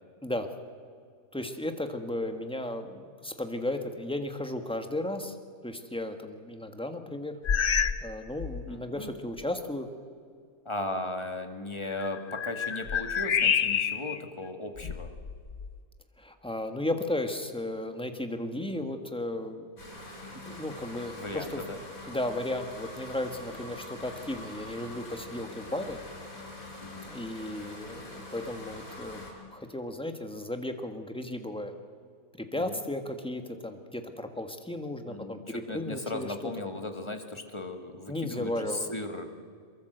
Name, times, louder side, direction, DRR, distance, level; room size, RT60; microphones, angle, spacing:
voice 1, 1.3-5.4 5.6-7.4 8.0-9.9 16.2-19.7 20.5-21.6 22.1-26.0 27.1-29.2 29.5-31.7 32.4-36.5 38.1-38.9, left 1 dB, 5° left, 6 dB, 1.5 m, -34 dB
sound 1, 7.4-8.1 8.4-8.7 9.4-9.5 11.9-14.2 14.8-15.8, left 7 dB, 45° left, 0.8 m, -29 dB
voice 2, 8.7-9.1 10.7-15.1 21.2-21.8 26.8-27.1 32.6-32.8 35.1-39.3, left 2 dB, 20° left, 5 dB, 1.7 m, -37 dB
sound 2, 19.8-29.3, left 1 dB, 70° left, 5.8 m, -44 dB
23.5 x 22.0 x 7.9 m, 2.2 s
omnidirectional pair, 1.5 m